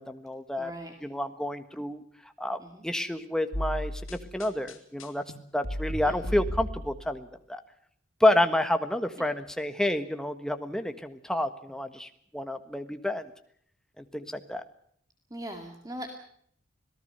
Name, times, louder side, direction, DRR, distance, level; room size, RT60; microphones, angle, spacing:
voice 1, 0.0-0.7 1.0-2.0 2.4-5.2 5.5-7.6 8.2-13.3 14.0-14.6, left 1 dB, 5° left, 8 dB, 1.4 m, -29 dB
voice 2, 0.6-0.9 2.6-2.8 6.0-6.4 15.3-16.1, right 1 dB, 20° right, 4 dB, 2.3 m, -40 dB
sound 1, 3.5-7.2, equal, 90° left, 3.1 m, -35 dB
26.5 x 18.0 x 6.8 m, 0.64 s
head